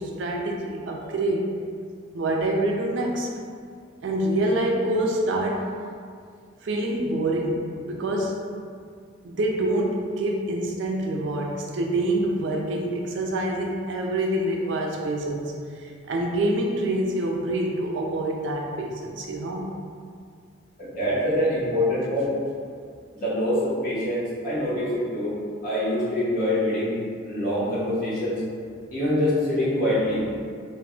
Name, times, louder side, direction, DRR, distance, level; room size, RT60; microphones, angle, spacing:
voice 1, 0.0-1.5 2.1-3.3 4.0-5.7 6.6-8.4 9.2-19.7, right 1 dB, 70° right, 0 dB, 0.4 m, -26 dB
voice 2, 20.8-22.3 23.1-25.3 25.6-27.0 27.2-28.4 28.9-30.4, left 1 dB, 45° left, -9 dB, 0.9 m, -25 dB
2.1 x 2.1 x 3.6 m, 2.2 s
head